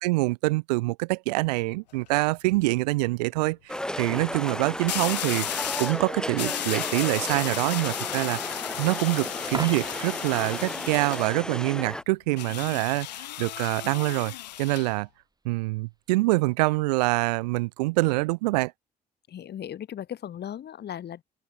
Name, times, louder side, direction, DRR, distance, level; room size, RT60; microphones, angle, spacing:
voice 1, 0.0-5.5 5.8-8.4 8.8-14.3 14.6-15.1 15.4-18.7, right 23 dB, 75° right, 2.2 m, -25 dB
sound 1, 1.7-2.1 4.9-6.0 6.4-11.4 12.4-14.9, left 13 dB, 80° left, 4.1 m, -34 dB
sound 2, 3.7-12.0, left 1 dB, 5° left, 2.0 m, -34 dB
Coin (dropping), 9.4-10.3 16.4-16.6, right 3 dB, 20° right, 2.6 m, -36 dB
voice 2, 19.3-21.2, left 10 dB, 50° left, 5.6 m, -37 dB
open air
figure-of-eight pair, 50°, 21 cm